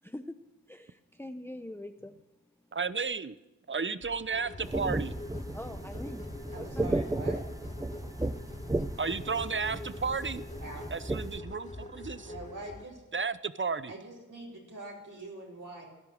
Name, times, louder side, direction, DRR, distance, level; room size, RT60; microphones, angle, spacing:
voice 1, 0.0-0.4 0.7-2.1 2.6-2.7 5.5-6.3 6.6-7.0, left 1 dB, 5° left, 7 dB, 0.9 m, -43 dB
voice 2, 2.7-3.4 3.7-5.1 9.0-10.4 10.9-12.3 13.1-13.9, right 5 dB, 40° right, 15 dB, 0.8 m, -33 dB
sound 1, 4.0-10.4, left 2 dB, 60° left, 4.3 m, -56 dB
sound 2, 4.3-12.8, left 2 dB, 25° left, 2.3 m, -44 dB
sound 3, 4.6-11.4, right 2 dB, 10° right, 0.5 m, -35 dB
voice 3, 6.5-7.4 10.6-10.9 12.2-13.0 13.9-15.9, right 2 dB, 75° right, -3 dB, 5.0 m, -44 dB
17.0 x 12.5 x 6.5 m, 1.1 s
wide cardioid pair, 75°, 31 cm